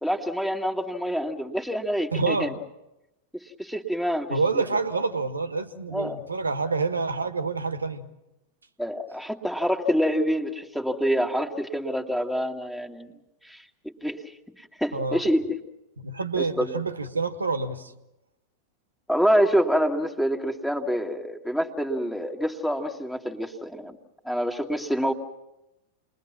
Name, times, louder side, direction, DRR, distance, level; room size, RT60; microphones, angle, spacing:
voice 1, 0.0-2.5 3.3-4.4 5.9-6.2 8.8-13.1 13.4-14.2 14.6-15.6 16.4-16.7 19.1-24.0 24.2-25.1, equal, 5° left, 3 dB, 2.0 m, -26 dB
voice 2, 2.1-2.6 4.3-8.1 14.9-15.2 16.0-17.9, right 4 dB, 80° right, 11 dB, 1.5 m, -27 dB
29.5 x 21.5 x 6.0 m, 0.93 s
figure-of-eight pair, 90°, 0 cm